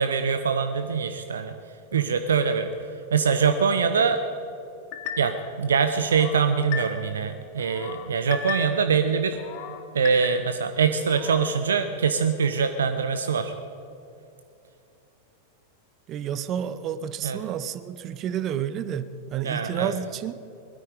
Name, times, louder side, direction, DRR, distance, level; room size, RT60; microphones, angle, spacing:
voice 1, 0.0-1.6 1.9-4.2 5.2-9.4 9.9-13.5 17.2-17.4 19.4-19.9, right 6 dB, 65° right, 8 dB, 0.7 m, -24 dB
sound 1, 4.9-5.5 6.0-7.2 7.6-8.9 9.3-10.7 11.1-11.6, left 7 dB, 45° left, 1.2 m, -36 dB
voice 2, 16.1-20.3, right 9 dB, 35° right, 14 dB, 0.7 m, -30 dB
20.0 x 13.0 x 5.0 m, 2.8 s
figure-of-eight pair, 90°, 0 cm